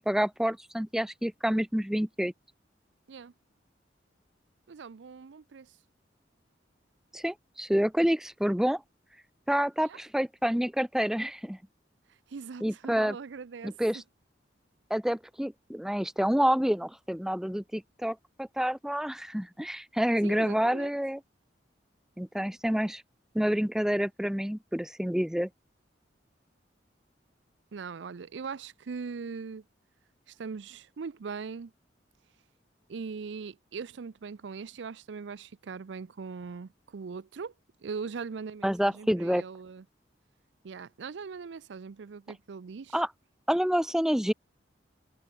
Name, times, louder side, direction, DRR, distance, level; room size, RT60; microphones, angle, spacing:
voice 1, 0.0-2.3 7.1-8.8 9.5-11.6 12.6-13.2 13.6-14.0 14.9-21.2 22.2-23.0 23.3-25.5 38.6-39.4 42.9-43.1 43.5-44.3, equal, 5° right, 0.5 m, -28 dB
voice 2, 4.7-5.7 9.9-10.0 12.3-14.0 20.2-20.9 27.7-29.6 30.3-31.7 32.9-37.5 37.8-39.8 40.6-43.0, right 5 dB, 75° right, 0.5 m, -40 dB
head